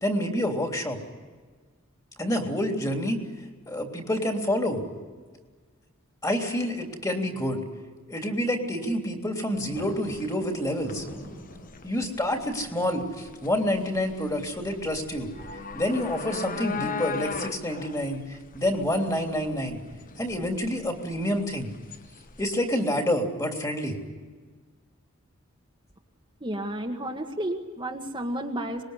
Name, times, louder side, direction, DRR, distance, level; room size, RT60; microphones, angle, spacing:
voice 1, 0.0-1.0 2.2-3.2 3.7-4.8 6.2-7.6 8.1-11.1 11.8-15.3 15.7-19.8 20.2-21.7 22.4-24.0, left 1 dB, 15° left, 3 dB, 3.3 m, -28 dB
sound 1, 9.5-22.7, left 5 dB, 40° left, 1.1 m, -40 dB
sound 2, 9.6-20.8, equal, 85° left, 7.1 m, -50 dB
voice 2, 26.4-28.8, right 1 dB, 25° right, 1 dB, 1.7 m, -32 dB
25.5 x 21.5 x 9.8 m, 1.5 s
head